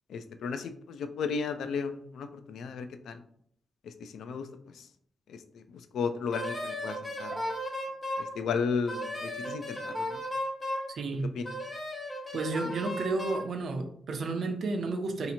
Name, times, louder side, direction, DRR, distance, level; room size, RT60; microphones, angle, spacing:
voice 1, 0.1-3.2 4.0-4.5 5.3-5.6 5.9-7.5 8.2-10.2 11.4-11.5, left 5 dB, 80° left, 9 dB, 0.3 m, -34 dB
Wind instrument woodwind instrument, 6.3-8.3 8.9-10.9 11.4-13.5, equal, 15° left, 0.6 m, -35 dB
voice 2, 10.9-11.4 12.3-15.3, right 3 dB, 50° right, 4 dB, 0.5 m, -32 dB
2.8 x 2.5 x 4.1 m, 0.65 s
wide cardioid pair, 175°, 0 cm